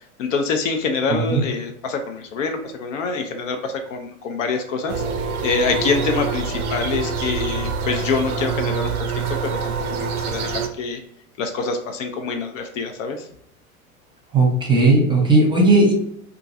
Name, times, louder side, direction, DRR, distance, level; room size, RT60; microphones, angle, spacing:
voice 1, 0.2-11.0 11.4-13.3, left 4 dB, 60° left, 5 dB, 0.5 m, -26 dB
voice 2, 1.1-1.4 14.3-15.9, right 2 dB, 10° right, -1 dB, 0.8 m, -16 dB
sound 1, 4.9-10.7, right 5 dB, 85° right, 0.5 m, -25 dB
2.9 x 2.4 x 2.6 m, 0.73 s
figure-of-eight pair, 85°, 43 cm